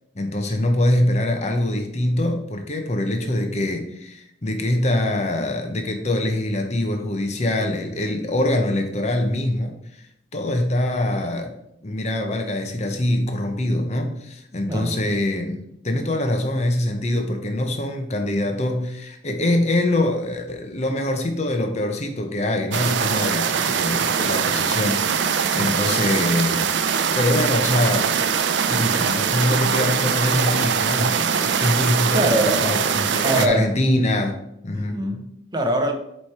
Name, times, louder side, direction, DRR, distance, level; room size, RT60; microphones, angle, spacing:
voice 1, 0.1-10.1 10.3-11.5 11.8-15.6 15.8-26.6 27.1-28.1 28.7-34.4 34.6-35.0, left 1 dB, 35° left, 4 dB, 0.8 m, -24 dB
voice 2, 14.7-15.0 32.1-32.8 33.2-33.7 34.7-35.9, right 1 dB, 20° right, 4 dB, 0.7 m, -23 dB
sound 1, 22.7-33.5, right 7 dB, 70° right, 0.5 m, -22 dB
7.8 x 3.3 x 4.3 m, 0.77 s
head